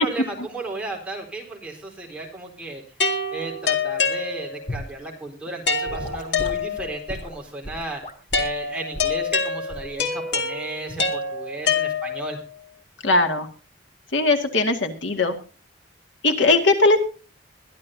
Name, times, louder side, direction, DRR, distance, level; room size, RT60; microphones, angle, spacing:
voice 1, 0.0-2.8 3.3-8.0 8.4-12.4, right 2 dB, 5° right, -1 dB, 4.3 m, -34 dB
sound 1, 3.0-4.8 5.7-7.1 8.3-12.4, left 4 dB, 65° left, 2.2 m, -26 dB
Gurgling / Sink (filling or washing) / Liquid, 4.7-4.9 5.9-8.6 8.9-9.2 9.7-10.0 10.9-11.1, left 1 dB, 40° left, 2.4 m, -35 dB
voice 2, 13.0-13.5 14.1-15.3 16.2-17.0, left 2 dB, 85° left, 5 dB, 2.2 m, -19 dB
22.0 x 12.0 x 2.7 m, 0.35 s
head